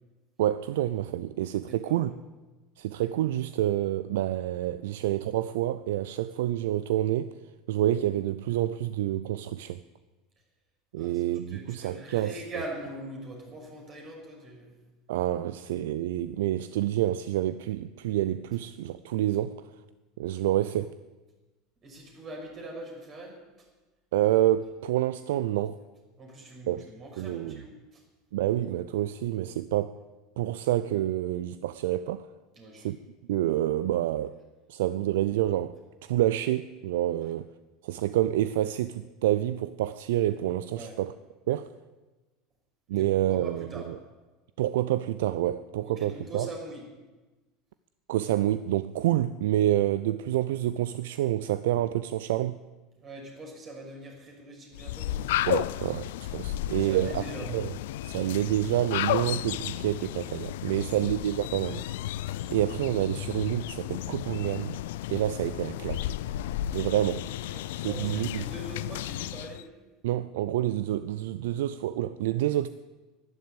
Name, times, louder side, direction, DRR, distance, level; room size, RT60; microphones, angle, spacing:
voice 1, 0.4-2.1 2.8-7.3 7.7-9.8 10.9-12.4 15.1-19.6 20.2-20.9 24.1-25.8 26.7-26.9 27.2-27.6 28.3-30.0 30.4-32.3 32.8-33.0 33.3-34.4 34.7-37.5 37.8-41.1 41.5-41.7 42.9-44.0 44.6-46.5 48.1-52.6 55.5-57.2 57.5-57.7 58.0-61.8 62.5-64.8 65.1-66.1 66.7-67.3 67.8-68.4 70.0-72.7, right 13 dB, 70° right, 0.4 m, -28 dB
voice 2, 1.7-2.1 10.9-14.7 21.8-23.7 26.2-28.0 32.5-32.9 40.7-41.0 42.9-43.9 45.8-46.8 52.9-55.2 56.8-57.7 60.7-60.9 62.3-62.6 67.5-69.6, right 1 dB, 40° right, 6.2 m, -42 dB
sound 1, 54.7-69.6, left 13 dB, 70° left, 0.4 m, -33 dB
12.0 x 12.0 x 8.9 m
hypercardioid pair, 75°, 0 cm